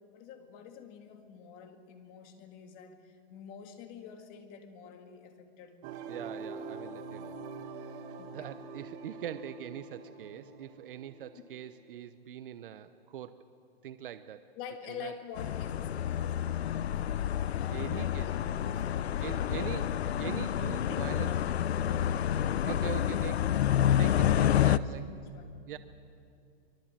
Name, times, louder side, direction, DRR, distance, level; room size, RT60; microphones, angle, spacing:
voice 1, 0.1-5.8 8.2-8.5 11.4-11.5 14.5-19.9 20.6-21.8 22.1-23.1 24.1-25.6, left 7 dB, 25° left, 5 dB, 2.1 m, -48 dB
sound 1, 5.8-11.7, right 4 dB, 25° right, 1.3 m, -44 dB
voice 2, 6.1-7.4 7.6-13.4 13.8-14.5 14.9-15.1 17.7-18.3 19.2-21.3 22.6-23.5 24.0-25.0 25.7-25.8, right 10 dB, 60° right, 11 dB, 1.0 m, -42 dB
sound 2, 15.4-24.8, left 10 dB, 90° left, 0.8 m, -29 dB
24.5 x 23.5 x 7.5 m, 2.4 s
hypercardioid pair, 160°, 31 cm